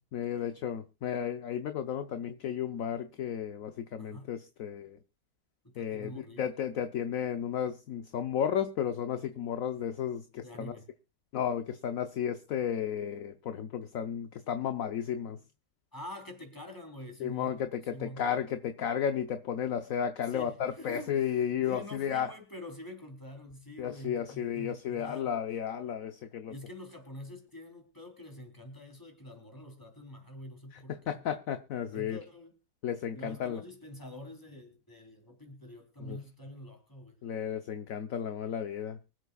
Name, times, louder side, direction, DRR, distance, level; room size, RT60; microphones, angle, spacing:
voice 1, 0.0-5.0 5.8-10.7 11.3-15.4 17.2-22.3 23.8-26.5 30.7-32.2 32.8-33.6 36.0-36.2 37.2-39.0, left 9 dB, 60° left, 9 dB, 1.1 m, -33 dB
voice 2, 4.0-4.3 5.7-6.5 10.4-10.9 15.9-17.6 17.9-18.2 20.2-25.3 26.5-31.2 31.9-32.5 33.1-37.2, left 1 dB, 10° left, 3 dB, 3.6 m, -46 dB
24.5 x 8.2 x 2.3 m, 0.28 s
omnidirectional pair, 1.9 m